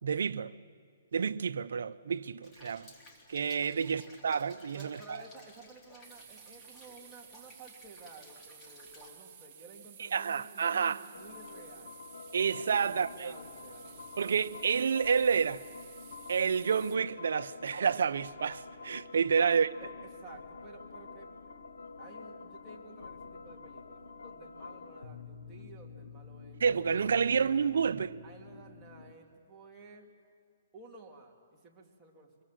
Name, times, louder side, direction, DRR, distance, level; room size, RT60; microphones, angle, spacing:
voice 1, 0.0-0.5 1.1-2.9 3.3-5.2 10.1-11.0 12.3-13.3 14.2-15.6 16.3-19.7 26.6-28.2, right 6 dB, 75° right, 0.8 m, -29 dB
Rain, 2.4-9.1, left 1 dB, 20° left, 3.6 m, -57 dB
voice 2, 4.7-12.0 12.8-14.3 19.4-19.5 19.8-21.3 22.0-26.6 27.1-27.6 28.2-30.1 30.7-32.4, right 3 dB, 10° right, 2.9 m, -54 dB
sound 1, 6.0-17.0, right 8 dB, 30° right, 2.1 m, -54 dB
sound 2, 11.1-29.1, left 4 dB, 90° left, 1.7 m, -48 dB
25.5 x 22.5 x 7.7 m
hypercardioid pair, 155°, 0 cm